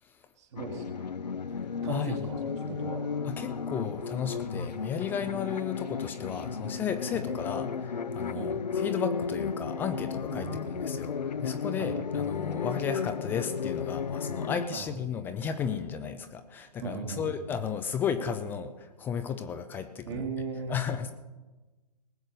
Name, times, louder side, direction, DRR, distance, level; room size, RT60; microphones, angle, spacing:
voice 1, 0.4-1.1 1.8-3.0 4.6-4.7 7.1-7.2 8.3-8.5 10.3-10.7 11.8-12.0 14.7-14.9 16.8-17.4 20.1-20.8, right 6 dB, 45° right, 0 dB, 2.1 m, -38 dB
sound 1, 0.6-14.7, left 6 dB, 80° left, 0.8 m, -34 dB
voice 2, 1.9-2.3 3.3-10.5 10.8-21.1, left 7 dB, 10° left, 9 dB, 0.4 m, -34 dB
19.0 x 7.9 x 6.6 m, 1.2 s
hypercardioid pair, 135°, 21 cm